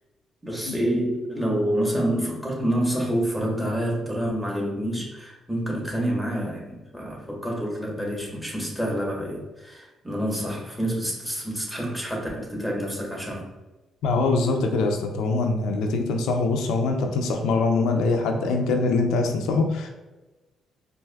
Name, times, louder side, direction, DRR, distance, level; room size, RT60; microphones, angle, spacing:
voice 1, 0.4-13.5, equal, 5° right, -2 dB, 1.2 m, -27 dB
voice 2, 14.0-19.9, left 3 dB, 85° left, 4 dB, 0.5 m, -23 dB
4.5 x 2.6 x 2.3 m, 1.1 s
cardioid pair, 90°, 0 cm